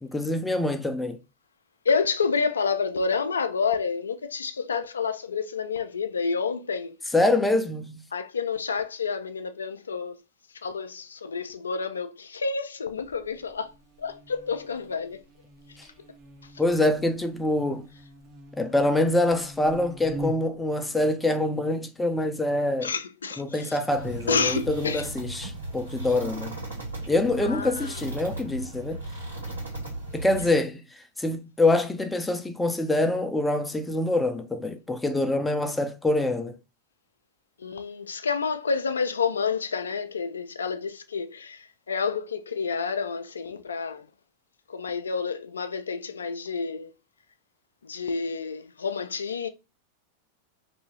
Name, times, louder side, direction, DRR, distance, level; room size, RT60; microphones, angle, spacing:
voice 1, 0.0-1.2 7.1-8.0 15.8-15.9 16.6-17.9 18.6-22.9 23.4-26.5 27.1-29.0 30.1-36.6, left 2 dB, 10° left, 0.4 m, -25 dB
voice 2, 1.8-7.0 8.1-10.2 10.6-13.7 14.0-15.2 22.8-23.8 24.3-25.1 27.4-28.0 37.6-44.0 44.7-46.9 47.8-49.5, left 5 dB, 70° left, 0.3 m, -29 dB
Buzz, 12.9-20.7, right 1 dB, 30° right, 0.7 m, -43 dB
sound 1, 23.9-30.5, right 2 dB, 85° right, 1.6 m, -36 dB
2.7 x 2.7 x 2.7 m
figure-of-eight pair, 90°, 0 cm